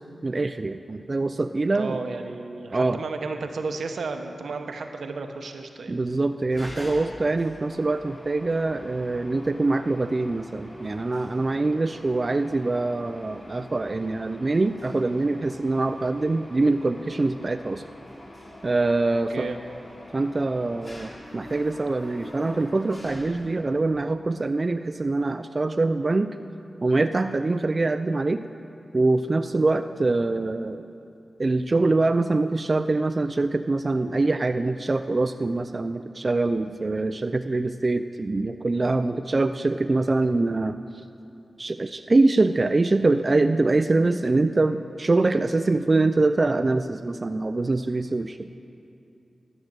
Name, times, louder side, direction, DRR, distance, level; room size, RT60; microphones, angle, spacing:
voice 1, 0.2-2.0 2.7-3.0 5.9-17.8 18.6-19.5 20.1-26.4 26.8-28.4 28.9-30.9 31.4-40.8 41.6-48.5, right 2 dB, 40° right, 9 dB, 0.3 m, -24 dB
voice 2, 1.7-6.0 19.1-19.6, right 4 dB, 85° right, 6 dB, 0.8 m, -33 dB
Mechanisms, 6.5-23.9, left 1 dB, 30° left, 2.9 m, -45 dB
12.0 x 6.5 x 7.4 m, 2.7 s
cardioid pair, 50°, 0 cm